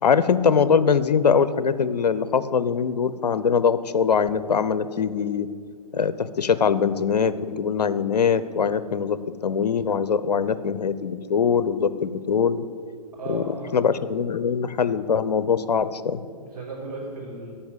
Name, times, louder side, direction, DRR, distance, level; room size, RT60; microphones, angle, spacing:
voice 1, 0.0-5.5 5.9-12.6 13.3-13.4 13.7-16.2, left 6 dB, 75° left, 15 dB, 0.7 m, -22 dB
voice 2, 13.1-13.8 16.4-17.5, right 3 dB, 75° right, -9 dB, 3.9 m, -35 dB
13.0 x 5.5 x 8.9 m, 2.1 s
hypercardioid pair, 130°, 21 cm